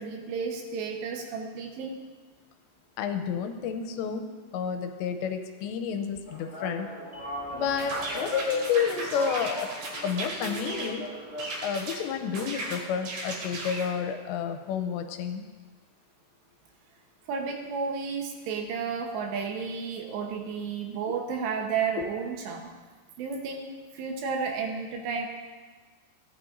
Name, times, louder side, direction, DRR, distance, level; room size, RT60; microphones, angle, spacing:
voice 1, 0.0-1.9 17.3-22.7 23.2-25.3, right 5 dB, 80° right, 2 dB, 3.2 m, -32 dB
voice 2, 3.0-4.2 4.5-6.9 7.5-9.7 10.0-11.1 11.6-15.5 22.0-22.1, left 7 dB, 85° left, 6 dB, 2.9 m, -30 dB
sound 1, 6.3-14.2, equal, 30° left, 1.2 m, -40 dB
sound 2, 7.8-10.9 11.4-12.0 12.3-13.9, right 2 dB, 60° right, 3.1 m, -36 dB
16.0 x 9.0 x 2.6 m, 1.4 s
omnidirectional pair, 5.1 m